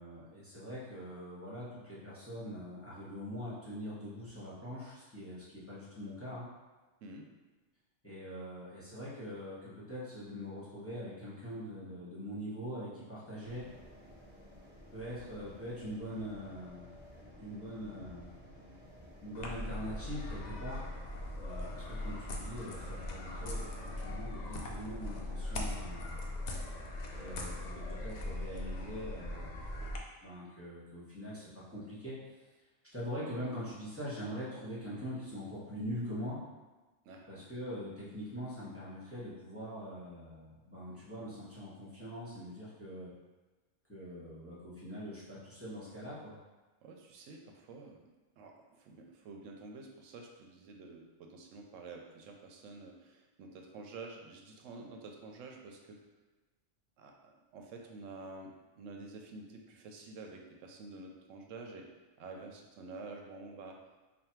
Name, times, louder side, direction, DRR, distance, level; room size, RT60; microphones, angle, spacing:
voice 1, 0.0-6.4 8.0-13.6 14.9-16.9 17.4-18.4 19.2-20.8 21.4-26.2 27.1-29.5 30.2-32.2 32.9-36.4 37.3-43.1 43.9-46.4, equal, 10° left, -9 dB, 0.9 m, -43 dB
sound 1, 13.4-24.2, equal, 15° right, 0.4 m, -55 dB
sound 2, 19.3-30.0, left 1 dB, 70° left, 0.4 m, -40 dB
voice 2, 37.0-37.5 46.8-48.0 48.4-56.0 57.0-61.9 62.2-63.8, right 3 dB, 90° right, 1 dB, 0.9 m, -49 dB
3.4 x 2.2 x 4.4 m, 1.2 s
omnidirectional pair, 1.3 m